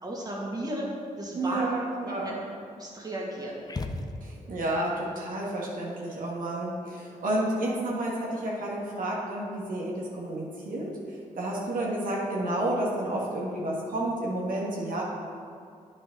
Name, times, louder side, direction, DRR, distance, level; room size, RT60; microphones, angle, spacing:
voice 1, 0.0-0.9 1.2-1.7 2.2-2.3 2.8-3.6, right 1 dB, 30° right, -3 dB, 2.1 m, -34 dB
voice 2, 1.3-2.4 4.2-15.0, right 1 dB, 75° right, -4 dB, 1.7 m, -30 dB
sound 1, 3.7-4.7, left 2 dB, 25° left, 0.7 m, -35 dB
9.0 x 6.3 x 5.3 m, 2.3 s
cardioid pair, 70°, 14 cm